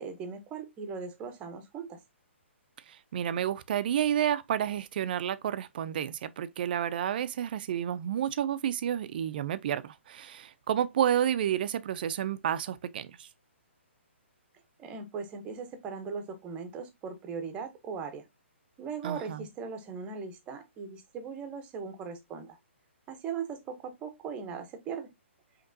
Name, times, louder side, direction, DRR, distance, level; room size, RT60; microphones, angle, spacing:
voice 1, 0.0-2.0 14.8-18.2 18.8-22.6 23.1-25.1, right 6 dB, 20° right, 0.7 m, -39 dB
voice 2, 2.9-13.3 19.0-19.5, right 10 dB, 45° right, 0.4 m, -30 dB
5.1 x 2.9 x 2.6 m
hypercardioid pair, 150°, 7 cm